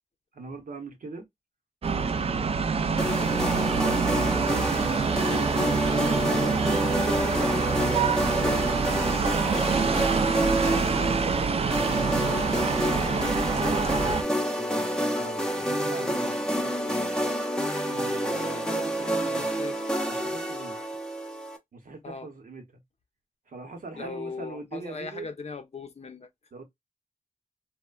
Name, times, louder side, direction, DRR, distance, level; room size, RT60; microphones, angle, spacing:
voice 1, 0.3-1.3 1.9-3.1 6.2-8.7 9.3-12.6 12.9-14.8 15.2-16.7 17.8-19.5 20.1-20.8 21.7-22.8 23.5-25.3 26.5-26.6, right 3 dB, 80° right, 0.8 m, -41 dB
sound 1, 1.8-14.2, right 5 dB, 45° right, 0.4 m, -26 dB
sound 2, 3.0-21.6, equal, 5° left, 0.6 m, -28 dB
voice 2, 19.1-19.8 22.0-22.3 24.0-26.3, left 4 dB, 50° left, 0.5 m, -39 dB
3.0 x 2.1 x 2.2 m
wide cardioid pair, 80°, 14 cm